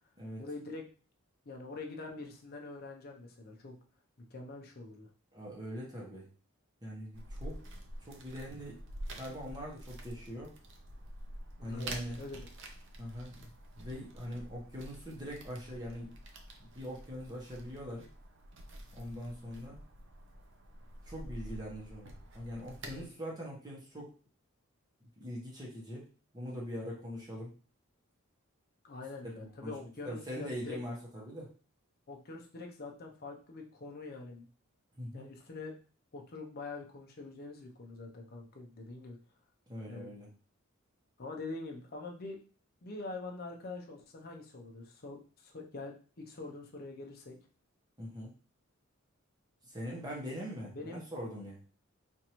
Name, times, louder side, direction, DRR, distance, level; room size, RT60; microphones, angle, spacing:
voice 1, 0.4-0.8 1.5-3.8 4.3-5.1 11.6-12.4 22.8-23.1 28.8-30.8 32.1-34.5 35.1-35.7 36.1-39.2 39.9-40.1 41.2-42.4 42.8-47.4 50.7-51.0, left 3 dB, 45° left, 2 dB, 0.6 m, -44 dB
voice 2, 5.3-6.3 6.8-7.7 8.0-8.8 9.2-10.5 11.6-12.2 13.0-16.2 16.6-18.1 18.9-19.8 21.0-24.1 25.2-26.0 26.3-27.5 29.2-31.5 35.0-35.3 39.7-40.3 48.0-48.3 49.6-51.6, equal, 20° right, -4 dB, 1.0 m, -42 dB
sound 1, 7.1-23.0, right 1 dB, 60° right, 0.6 m, -48 dB
4.5 x 2.6 x 2.9 m, 0.38 s
head